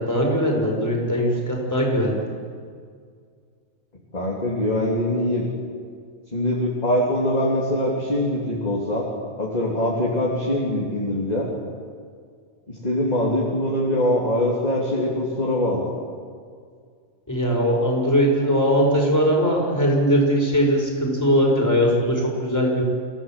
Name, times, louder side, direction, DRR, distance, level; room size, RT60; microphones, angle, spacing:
voice 1, 0.0-2.3 17.3-22.8, equal, 10° left, -1 dB, 5.4 m, -20 dB
voice 2, 4.1-5.4 6.3-9.1 9.4-11.5 12.7-15.9, left 1 dB, 30° left, -4 dB, 3.1 m, -23 dB
28.0 x 16.5 x 7.5 m, 2.1 s
omnidirectional pair, 1.4 m